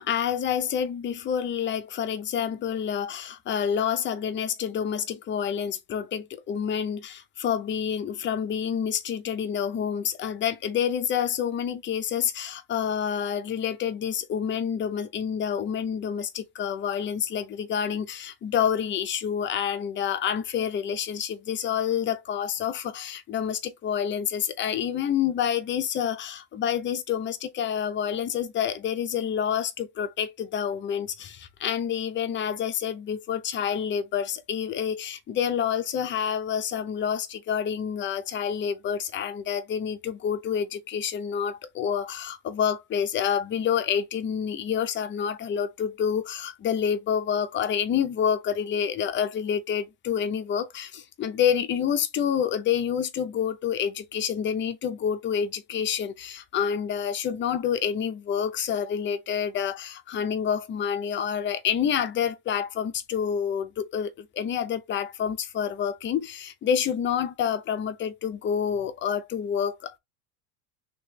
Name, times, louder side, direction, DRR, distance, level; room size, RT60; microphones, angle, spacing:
voice 1, 0.0-70.0, left 8 dB, 25° left, 0.6 m, -28 dB
3.1 x 3.0 x 3.2 m
supercardioid pair, 115°, 44 cm